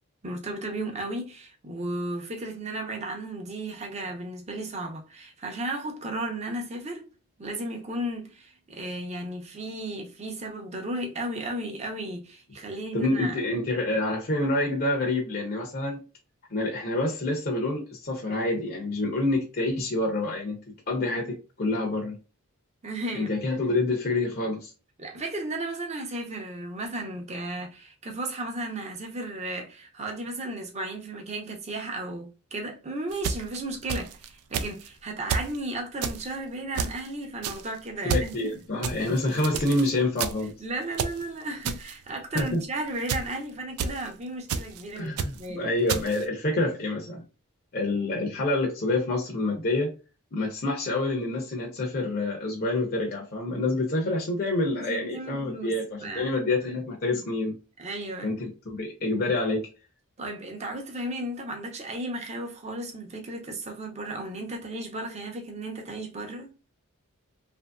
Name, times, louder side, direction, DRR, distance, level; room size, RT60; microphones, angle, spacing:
voice 1, 0.2-7.0 7.4-13.4 22.8-23.3 25.0-38.3 40.6-45.1 45.4-45.7 54.8-55.7 56.0-56.3 57.1-57.2 57.8-58.3 60.2-66.5, right 1 dB, 30° right, 0.7 m, -34 dB
voice 2, 12.9-16.0 16.5-20.6 20.9-22.2 23.1-24.7 38.0-40.5 42.3-42.6 44.9-47.2 47.7-49.9 50.3-57.5 58.2-59.7, left 2 dB, 45° left, 0.6 m, -27 dB
sound 1, 33.1-34.3 34.5-34.9 35.3-35.6 36.0-36.3 36.7-37.1 37.4-37.7 38.1-38.3 38.8-39.9 40.2-40.5 40.9-41.2 41.6-41.9 42.4-42.6 43.1-43.3 43.8-44.1 44.5-44.8 45.2-45.5 45.9-46.2, right 6 dB, 85° right, 0.4 m, -30 dB
3.0 x 2.6 x 2.2 m
head